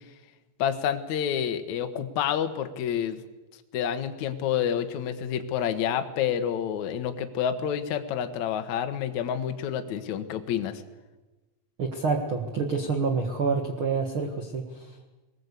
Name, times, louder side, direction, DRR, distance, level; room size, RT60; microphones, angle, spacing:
voice 1, 0.6-3.2 3.7-10.8, left 9 dB, 65° left, 7 dB, 1.8 m, -28 dB
voice 2, 11.8-15.1, right 4 dB, 75° right, 3 dB, 1.2 m, -28 dB
21.5 x 19.0 x 8.3 m, 1.2 s
omnidirectional pair, 5.2 m